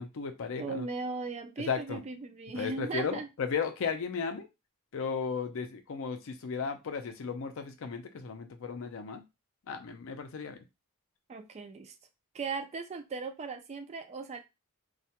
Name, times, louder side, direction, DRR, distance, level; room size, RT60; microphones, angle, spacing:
voice 1, 0.0-0.9 1.7-2.0 2.6-4.5 4.9-9.2 9.7-10.6, left 5 dB, 65° left, 0.5 m, -35 dB
voice 2, 0.6-3.3 11.3-11.9 12.3-14.4, right 4 dB, 30° right, 0.3 m, -37 dB
2.3 x 2.1 x 2.8 m
head